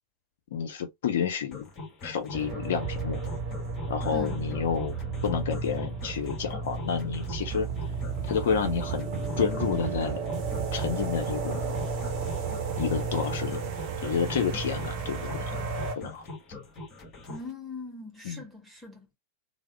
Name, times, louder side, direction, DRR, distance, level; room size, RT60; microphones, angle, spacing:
voice 1, 0.5-1.7 2.0-3.2 3.9-5.0 5.2-7.7 8.3-9.1 9.4-10.3 10.7-11.8 12.8-13.6 14.0-15.5 16.0-16.3 18.2-18.4, left 7 dB, 60° left, 0.6 m, -30 dB
sound 1, 1.5-17.5, left 3 dB, 25° left, 1.2 m, -42 dB
sound 2, 2.3-15.9, right 4 dB, 40° right, 0.8 m, -33 dB
voice 2, 17.3-19.0, left 3 dB, 5° right, 1.5 m, -40 dB
3.4 x 2.0 x 3.4 m
figure-of-eight pair, 90°, 0 cm